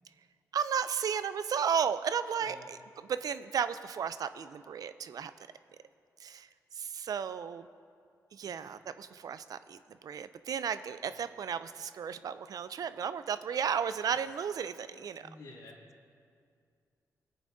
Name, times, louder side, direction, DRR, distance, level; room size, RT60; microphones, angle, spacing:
voice 1, 0.5-5.3 6.2-6.5 6.7-7.7 8.3-15.3, right 7 dB, 65° right, 13 dB, 0.4 m, -34 dB
voice 2, 8.4-8.7 15.2-15.8, left 2 dB, 80° left, -4 dB, 2.5 m, -51 dB
18.5 x 8.9 x 2.6 m, 2.3 s
cardioid pair, 70°, 7 cm